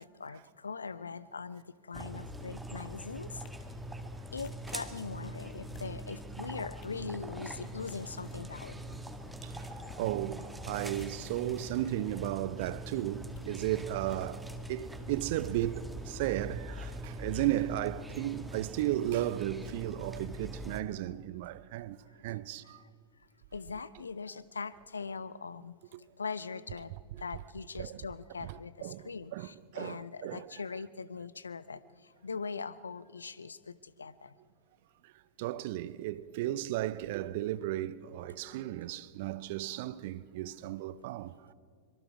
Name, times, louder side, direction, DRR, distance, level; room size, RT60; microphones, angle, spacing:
voice 1, 0.0-3.4 4.3-8.8 22.3-22.4 23.5-25.7 26.2-26.9 27.2-31.8 32.2-34.3, left 5 dB, 75° left, 0.6 m, -41 dB
sound 1, 1.9-20.8, right 1 dB, 5° right, 1.5 m, -43 dB
sound 2, 3.4-3.5 4.4-4.5 5.5-6.0 6.5-7.0 7.9-8.1 8.7-9.1 9.8-10.0 10.9-11.4 12.2-12.3 13.3-13.5 14.1-14.2, left 6 dB, 40° left, 1.8 m, -53 dB
voice 2, 10.0-22.0 22.2-22.8 25.9-26.0 27.1-27.2 27.8-28.0 28.4-30.5 35.4-41.5, right 14 dB, 50° right, 0.6 m, -35 dB
24.5 x 23.0 x 4.8 m
figure-of-eight pair, 90°, 0 cm